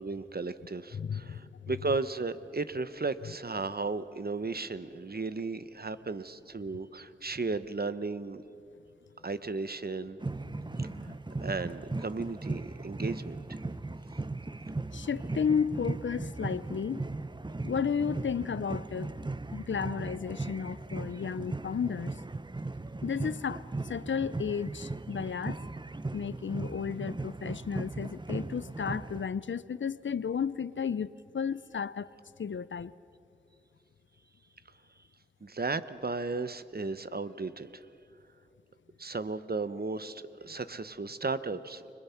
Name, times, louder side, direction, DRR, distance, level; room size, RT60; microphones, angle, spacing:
voice 1, 0.0-8.4 9.2-10.2 10.8-11.1 11.4-13.6 35.4-37.8 39.0-41.9, right 3 dB, 55° right, 0.9 m, -35 dB
voice 2, 0.9-1.6 10.5-11.2 14.9-17.0 17.6-19.2 19.5-22.2 23.0-25.6 26.1-32.1 32.4-32.9, left 6 dB, 85° left, 0.5 m, -33 dB
sound 1, 10.2-29.3, right 2 dB, 25° right, 0.6 m, -38 dB
29.5 x 21.5 x 5.8 m
wide cardioid pair, 40°, 19 cm